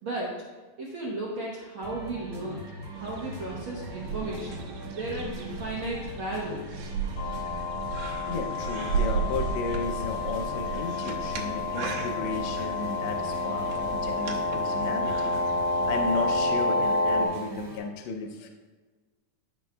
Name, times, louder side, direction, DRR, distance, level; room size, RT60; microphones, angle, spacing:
voice 1, 0.0-0.3 0.8-2.7 3.0-6.9, right 2 dB, 60° right, -6 dB, 1.4 m, -35 dB
sound 1, 1.8-17.8, right 1 dB, 30° right, 1.7 m, -41 dB
sound 2, 2.9-16.5, right 5 dB, 90° right, 2.5 m, -36 dB
sound 3, 7.2-17.3, left 2 dB, 60° left, 1.7 m, -29 dB
voice 2, 8.3-15.3 15.9-18.5, left 4 dB, 80° left, 3 dB, 1.6 m, -34 dB
15.0 x 5.1 x 2.3 m, 1.3 s
omnidirectional pair, 3.7 m